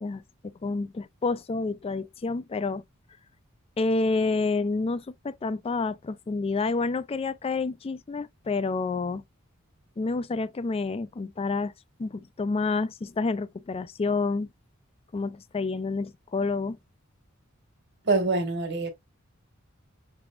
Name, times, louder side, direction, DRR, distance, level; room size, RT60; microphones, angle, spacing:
voice 1, 0.0-2.8 3.8-9.2 10.0-11.7 12.0-14.5 15.1-16.8, left 3 dB, 30° left, 0.4 m, -29 dB
voice 2, 18.0-18.9, right 3 dB, 55° right, 1.6 m, -25 dB
5.9 x 3.4 x 2.4 m
head